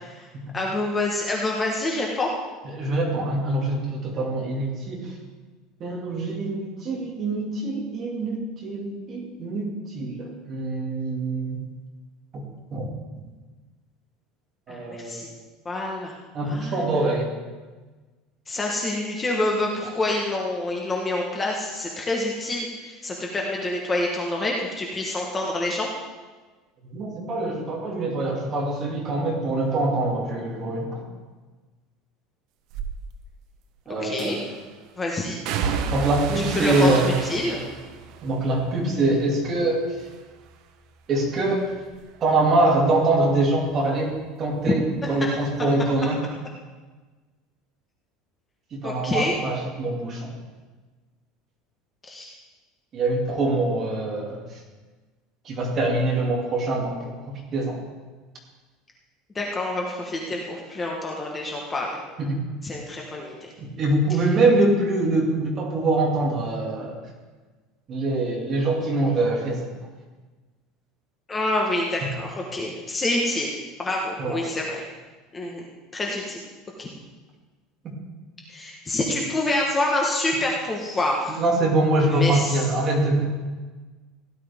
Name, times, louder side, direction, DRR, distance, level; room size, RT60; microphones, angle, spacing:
voice 1, 0.5-2.3 14.7-15.3 15.6-16.1 16.4-17.0 18.5-25.9 34.0-34.4 35.0-35.4 36.5-37.6 48.8-49.3 52.0-52.3 59.3-62.0 62.6-63.5 71.3-74.8 75.3-75.7 75.9-76.4 76.8-76.9 78.5-81.4 82.0-82.6, left 2 dB, 15° left, -1 dB, 1.2 m, -27 dB
voice 2, 2.6-5.1 5.8-11.6 12.3-12.9 14.7-15.2 16.3-17.3 26.9-31.0 33.9-34.4 35.9-37.1 38.2-40.0 41.1-41.7 42.2-46.2 48.7-50.4 52.9-54.6 55.4-57.8 62.2-62.4 63.6-67.0 67.9-69.7 74.2-74.4 81.4-83.3, right 2 dB, 30° right, -1 dB, 2.5 m, -24 dB
sound 1, 32.7-32.9 34.2-34.6 35.5-39.7 40.0-40.6 41.0-44.3 44.6-45.7 46.0-46.1, right 6 dB, 50° right, 0.9 m, -33 dB
16.5 x 11.0 x 3.6 m, 1.3 s
cardioid pair, 170°, 0 cm